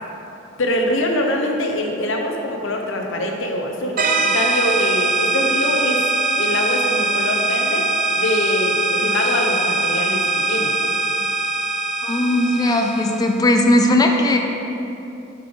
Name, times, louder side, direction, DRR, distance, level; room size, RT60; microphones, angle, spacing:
voice 1, 0.6-6.0 6.4-7.9 8.1-10.7, left 1 dB, 70° left, 2 dB, 0.8 m, -23 dB
sound 1, 4.0-13.4, right 2 dB, 45° right, 0.5 m, -21 dB
voice 2, 12.0-14.4, left 1 dB, 20° left, 3 dB, 0.4 m, -17 dB
6.9 x 5.7 x 3.8 m, 2.9 s
head